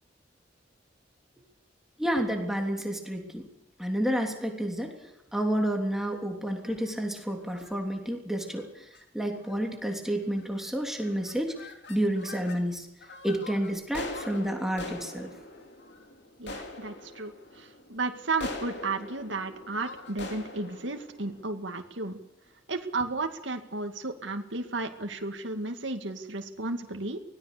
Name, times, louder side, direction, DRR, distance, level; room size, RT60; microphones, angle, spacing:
voice 1, 2.0-3.5 3.8-4.9 5.3-8.9 9.1-12.9 13.2-15.3, equal, ahead, 2 dB, 3.2 m, -30 dB
sound 1, 6.5-6.9 7.5-7.7 8.4-8.6 8.9-9.0 9.4-9.7 10.3-10.6 10.9-12.6 13.0-22.2, left 2 dB, 65° left, 3.6 m, -43 dB
voice 2, 16.4-22.2 22.7-27.2, right 3 dB, 70° right, 4 dB, 2.2 m, -33 dB
24.0 x 18.0 x 6.8 m, 0.84 s
head